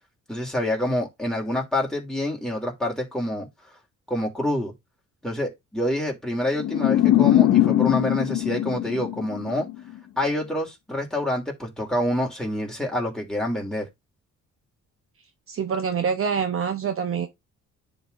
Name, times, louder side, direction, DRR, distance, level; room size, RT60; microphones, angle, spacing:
voice 1, 0.3-3.5 4.1-4.7 5.2-9.7 10.2-13.9, left 1 dB, ahead, 3.0 m, -27 dB
sound 1, 6.6-9.8, left 13 dB, 70° left, 0.7 m, -21 dB
voice 2, 15.5-17.3, right 6 dB, 45° right, 0.9 m, -25 dB
10.5 x 4.1 x 2.6 m
cardioid pair, 90°, 30 cm